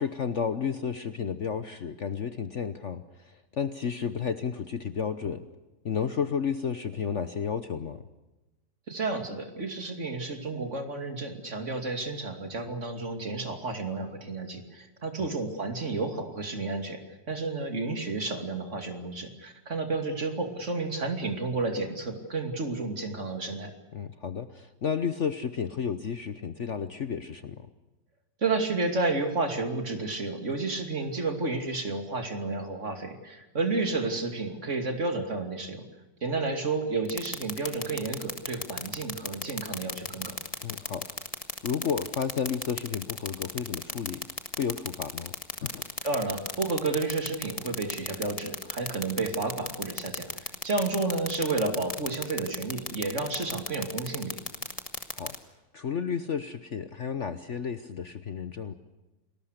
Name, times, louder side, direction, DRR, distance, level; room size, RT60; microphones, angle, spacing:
voice 1, 0.0-5.5 5.8-8.0 15.2-15.3 23.9-27.7 40.6-41.2 41.6-44.3 44.6-45.3 45.6-45.8 55.1-55.4 55.7-58.7, left 7 dB, 50° left, 11 dB, 1.1 m, -32 dB
voice 2, 8.9-17.0 17.3-23.7 28.4-35.8 36.2-40.4 46.0-54.4, right 3 dB, 40° right, 5 dB, 2.9 m, -31 dB
sound 1, 37.1-55.4, left 3 dB, 20° left, 1.7 m, -33 dB
29.5 x 20.0 x 6.6 m, 1.0 s
omnidirectional pair, 1.9 m